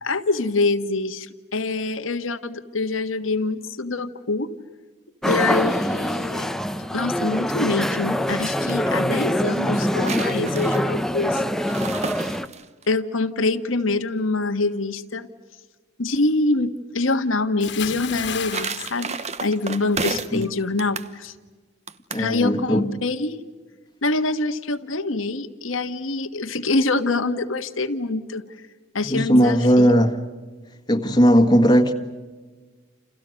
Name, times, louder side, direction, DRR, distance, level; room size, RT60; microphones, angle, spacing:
voice 1, 0.0-4.5 5.2-6.5 6.9-11.4 12.9-15.3 16.0-21.3 22.2-23.4 24.0-28.4 28.9-29.9, left 3 dB, 85° left, 1.6 m, -25 dB
sound 1, 5.2-12.5, equal, ahead, 0.9 m, -24 dB
sound 2, 8.2-8.8 9.6-12.9 18.0-20.5 20.8-21.1 21.9-22.3, right 4 dB, 35° right, 1.1 m, -32 dB
Bathtub (filling or washing) / Splash splatter, 17.6-20.0 20.3-20.6, left 8 dB, 60° left, 1.8 m, -33 dB
voice 2, 22.1-22.9 29.0-30.2 30.9-31.9, equal, 20° left, 1.8 m, -17 dB
29.5 x 29.0 x 6.5 m
head